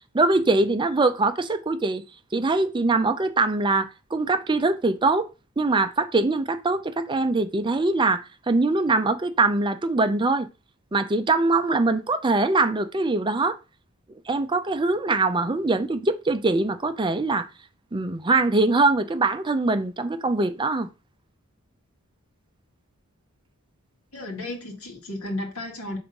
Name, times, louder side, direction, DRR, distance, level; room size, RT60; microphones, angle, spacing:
voice 1, 0.1-2.0 2.3-5.2 5.6-10.5 10.9-13.6 14.3-17.5 17.9-20.9, right 3 dB, 20° right, 0.5 m, -22 dB
voice 2, 24.1-26.0, left 1 dB, 70° left, 1.9 m, -33 dB
5.6 x 3.4 x 5.2 m
head